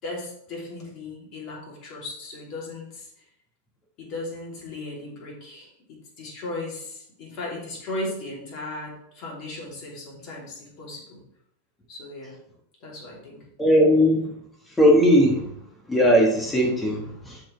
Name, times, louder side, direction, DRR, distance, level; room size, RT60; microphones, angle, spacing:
voice 1, 0.0-3.1 4.0-11.2 11.9-12.3 12.8-13.4, left 2 dB, 40° left, -3 dB, 3.3 m, -36 dB
voice 2, 13.6-14.4 14.8-15.5 15.9-17.4, equal, 10° left, 0 dB, 1.7 m, -19 dB
12.0 x 4.7 x 3.5 m, 0.72 s
figure-of-eight pair, 90°, 0 cm